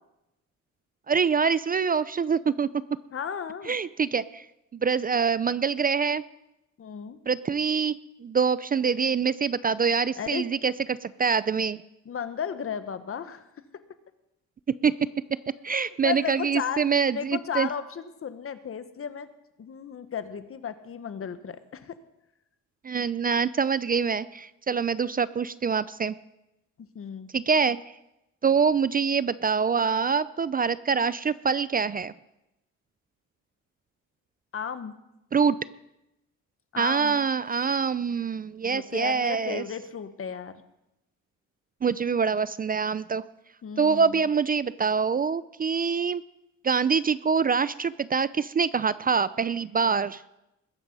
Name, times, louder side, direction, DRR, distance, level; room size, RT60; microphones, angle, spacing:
voice 1, 1.1-2.7 3.7-4.4 4.7-6.2 7.3-11.8 14.8-14.9 15.6-17.7 22.8-26.1 27.3-27.8 28.4-32.1 35.3-35.6 36.8-39.6 41.8-43.3 43.8-46.2 46.6-50.2, right 6 dB, 30° right, 17 dB, 0.4 m, -25 dB
voice 2, 3.1-3.8 6.8-7.2 10.2-10.4 12.0-13.5 13.7-13.8 16.0-16.9 17.1-19.3 19.6-22.0 26.8-27.3 34.5-35.0 36.7-37.2 38.6-40.6 43.6-44.3, left 7 dB, 45° left, 11 dB, 1.3 m, -34 dB
21.0 x 9.4 x 5.5 m, 0.91 s
cardioid pair, 90°, 30 cm